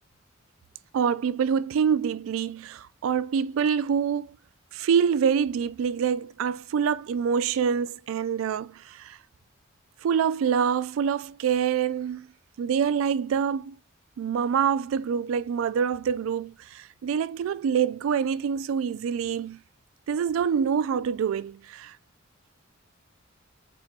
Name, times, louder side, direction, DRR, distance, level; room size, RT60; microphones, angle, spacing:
voice 1, 0.9-4.4 4.7-9.2 10.0-12.3 12.6-13.8 14.2-19.6 20.1-21.9, right 7 dB, 80° right, 0.3 m, -26 dB
4.4 x 3.3 x 2.7 m
head